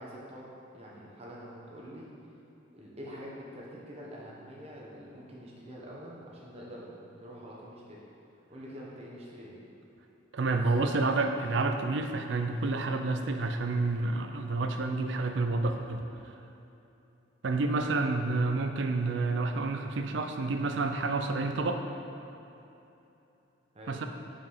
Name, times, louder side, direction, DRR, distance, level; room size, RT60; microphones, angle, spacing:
voice 1, 0.0-2.1 2.7-8.0 8.5-9.6 10.4-10.8 23.7-23.9, equal, 30° right, -4 dB, 1.1 m, -46 dB
voice 2, 10.3-16.0 17.4-21.8 23.9-24.1, right 3 dB, 65° right, 6 dB, 0.4 m, -29 dB
5.2 x 4.7 x 5.5 m, 2.9 s
head